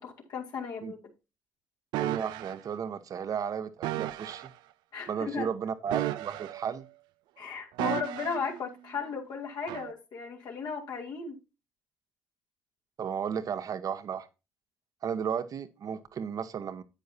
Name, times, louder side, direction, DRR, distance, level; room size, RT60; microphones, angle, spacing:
voice 1, 0.0-1.0 4.9-5.5 7.4-11.4, left 5 dB, 60° left, 2.8 m, -35 dB
sound 1, 1.9-2.6 3.8-4.5 5.9-6.8 7.8-8.5 9.7-9.9, right 15 dB, 65° right, 0.5 m, -33 dB
voice 2, 2.0-4.5 5.1-6.9 13.0-14.3 15.0-16.8, right 7 dB, 50° right, 1.1 m, -34 dB
10.0 x 9.1 x 2.8 m
hypercardioid pair, 55°, 8 cm